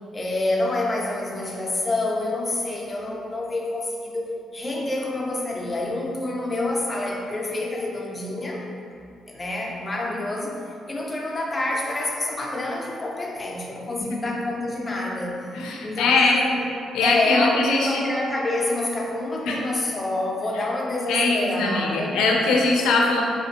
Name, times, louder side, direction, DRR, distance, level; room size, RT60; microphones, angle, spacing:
voice 1, 0.1-8.7 9.3-15.5 15.8-16.7 17.0-22.2, left 2 dB, 25° left, -1 dB, 0.4 m, -27 dB
voice 2, 15.5-16.4 16.9-18.0 19.4-19.6 20.5-20.6 21.1-23.2, left 3 dB, 90° left, -1 dB, 0.4 m, -21 dB
2.8 x 2.4 x 2.7 m, 2.5 s
cardioid pair, 90°, 0 cm